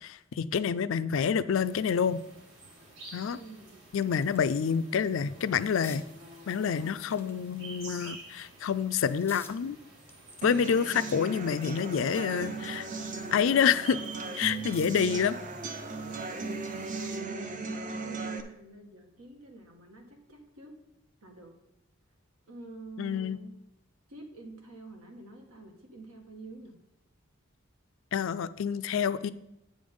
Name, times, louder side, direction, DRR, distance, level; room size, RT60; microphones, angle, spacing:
voice 1, 0.0-2.2 3.1-3.4 3.9-6.0 6.5-9.8 10.4-12.9 13.3-14.0 14.4-15.4 23.0-23.4 28.1-29.3, left 7 dB, 60° left, 14 dB, 0.4 m, -28 dB
sound 1, 1.6-17.2, right 2 dB, 60° right, 2.6 m, -50 dB
voice 2, 3.3-3.9 14.2-15.1 15.7-16.5 16.8-20.8 21.2-21.5 22.5-23.6 24.1-26.8, right 2 dB, 80° right, 2 dB, 1.6 m, -48 dB
sound 2, 3.5-4.8 5.1-6.1 7.0-7.9 8.5-9.6 10.1-12.3 12.7-15.2 16.6-16.8, left 5 dB, 10° left, 0.6 m, -53 dB
sound 3, 10.4-18.4, right 3 dB, 35° right, 0.6 m, -37 dB
8.6 x 5.1 x 5.4 m, 0.87 s
head